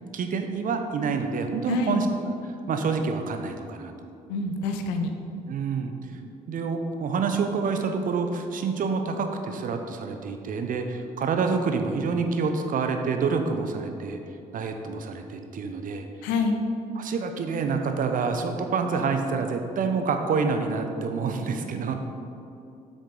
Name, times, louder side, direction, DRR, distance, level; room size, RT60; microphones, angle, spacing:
voice 1, 0.1-4.1 5.5-5.9 6.5-14.2 14.5-16.1 17.0-21.9, right 5 dB, 45° right, 6 dB, 0.7 m, -27 dB
voice 2, 1.7-2.0 4.3-5.1 16.2-16.6, left 4 dB, 65° left, 5 dB, 0.7 m, -26 dB
7.6 x 6.4 x 3.8 m, 2.7 s
figure-of-eight pair, 45°, 19 cm